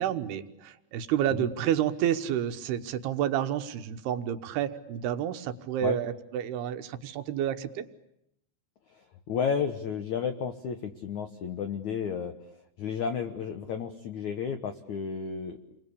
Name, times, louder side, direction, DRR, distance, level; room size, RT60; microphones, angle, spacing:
voice 1, 0.0-7.9, right 10 dB, 70° right, 9 dB, 2.9 m, -30 dB
voice 2, 8.9-15.6, left 6 dB, 85° left, 9 dB, 1.6 m, -32 dB
29.5 x 23.0 x 8.6 m, 0.79 s
omnidirectional pair, 5.5 m